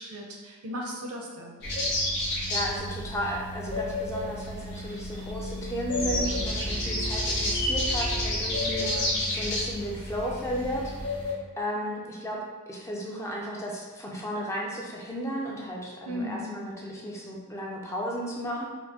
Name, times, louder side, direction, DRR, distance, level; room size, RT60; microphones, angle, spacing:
voice 1, 0.0-1.6 8.7-9.1 16.0-16.5, equal, 70° right, -1 dB, 0.6 m, -37 dB
sound 1, 1.6-11.3, left 1 dB, 50° left, 1.2 m, -30 dB
voice 2, 2.5-8.9 9.3-11.2 11.6-18.7, equal, 10° left, -2 dB, 0.3 m, -34 dB
sound 2, 6.0-9.8, equal, 75° left, 0.8 m, -36 dB
4.2 x 2.0 x 2.8 m, 1.4 s
head